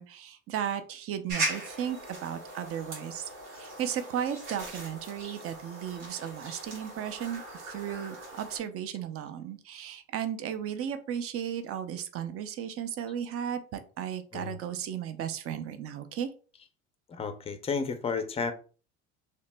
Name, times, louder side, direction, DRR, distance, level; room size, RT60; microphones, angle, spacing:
voice 1, 0.0-16.3, right 9 dB, 40° right, 10 dB, 0.5 m, -35 dB
sound 1, 1.3-8.6, right 2 dB, 85° right, 1.6 m, -39 dB
voice 2, 17.1-18.5, left 5 dB, 15° left, 9 dB, 0.5 m, -32 dB
2.9 x 2.0 x 3.3 m, 0.38 s
supercardioid pair, 90°, 36 cm